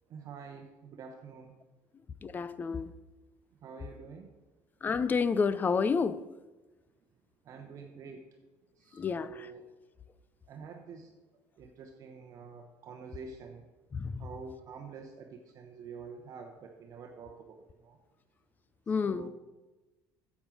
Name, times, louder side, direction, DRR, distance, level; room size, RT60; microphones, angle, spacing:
voice 1, 0.1-1.5 3.6-4.3 7.4-8.3 8.7-9.7 10.5-11.2 11.6-13.7 14.2-18.0 18.9-19.3, right 5 dB, 45° right, 0.9 m, -47 dB
voice 2, 2.2-2.9 4.8-6.2 8.9-9.5 13.9-14.3 18.9-19.3, left 5 dB, 25° left, 0.4 m, -30 dB
8.7 x 7.3 x 6.2 m
cardioid pair, 130°, 8 cm